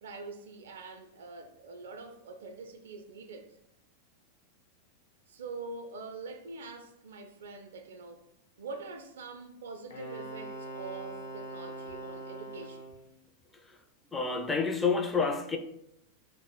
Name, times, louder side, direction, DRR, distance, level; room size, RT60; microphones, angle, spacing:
voice 1, 0.0-3.5 5.3-8.3 8.6-12.9, right 4 dB, 60° right, 0.4 m, -44 dB
Wind instrument woodwind instrument, 9.9-13.1, right 1 dB, 65° left, 0.9 m, -42 dB
voice 2, 14.1-15.6, left 5 dB, 10° left, 0.4 m, -29 dB
3.3 x 2.0 x 3.9 m
figure-of-eight pair, 90°, 0 cm